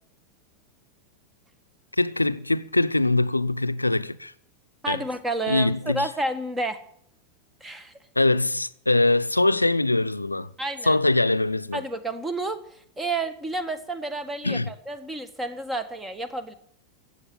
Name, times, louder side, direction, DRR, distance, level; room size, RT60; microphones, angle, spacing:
voice 1, 2.0-4.3 4.9-5.0 5.5-6.1 8.2-10.5 10.8-11.8 14.4-14.7, left 2 dB, 90° left, 0.6 m, -23 dB
voice 2, 4.8-6.8 7.6-7.9 10.6-11.0 11.7-12.6 13.0-16.5, right 2 dB, 15° right, 1.7 m, -30 dB
14.5 x 8.2 x 9.9 m
figure-of-eight pair, 90°, 0 cm